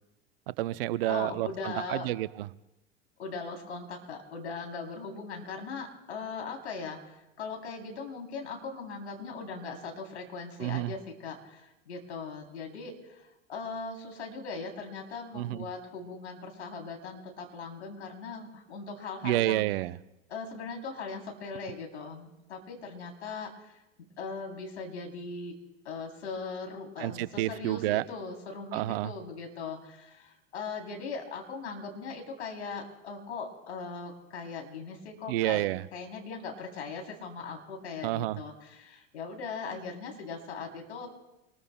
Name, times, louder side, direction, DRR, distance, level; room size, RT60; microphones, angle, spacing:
voice 1, 0.5-2.5 10.6-10.9 15.3-15.6 19.2-20.0 27.0-28.0 28.7-29.1 35.3-35.9 38.0-38.4, right 16 dB, 55° right, 16 dB, 0.6 m, -29 dB
voice 2, 1.0-2.1 3.2-19.7 20.3-25.5 25.8-35.7 35.9-41.1, left 4 dB, 75° left, 2 dB, 3.2 m, -39 dB
25.5 x 20.5 x 2.2 m, 0.96 s
hypercardioid pair, 85°, 34 cm